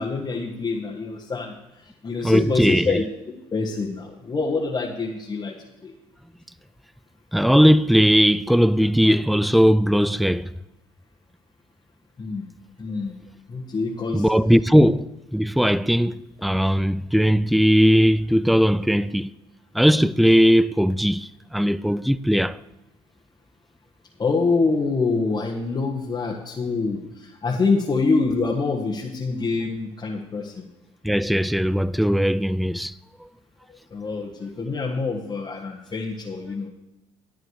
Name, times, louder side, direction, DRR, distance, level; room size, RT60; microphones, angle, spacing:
voice 1, 0.0-3.0 3.5-5.5 5.8-5.9 12.2-12.4 12.8-13.2 13.5-14.3 24.2-30.7 33.7-36.7, left 4 dB, 30° left, 1.5 m, -26 dB
voice 2, 2.2-3.0 7.3-10.5 14.1-19.3 19.7-22.6 31.0-32.9, equal, ahead, 0.4 m, -19 dB
11.0 x 9.0 x 4.8 m
supercardioid pair, 75°, 13 cm